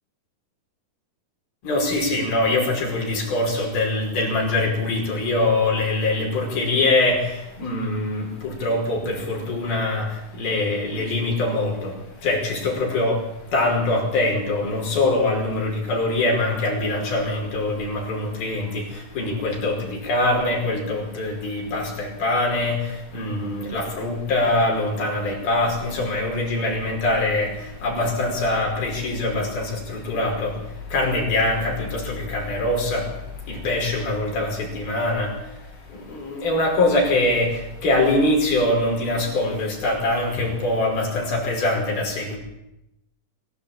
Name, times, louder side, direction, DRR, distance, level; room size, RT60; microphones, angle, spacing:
voice 1, 1.6-42.4, left 2 dB, 75° left, 0 dB, 7.3 m, -23 dB
25.5 x 16.0 x 9.1 m, 0.89 s
omnidirectional pair, 4.3 m